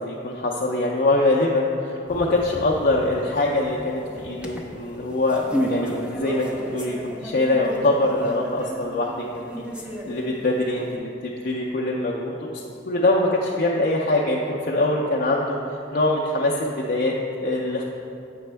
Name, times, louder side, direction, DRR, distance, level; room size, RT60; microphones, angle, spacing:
voice 1, 0.0-9.5 10.0-17.8, left 2 dB, 45° left, -3 dB, 0.4 m, -23 dB
sound 1, 2.1-10.9, equal, 5° right, 0.5 m, -34 dB
7.6 x 5.1 x 3.3 m, 2.7 s
head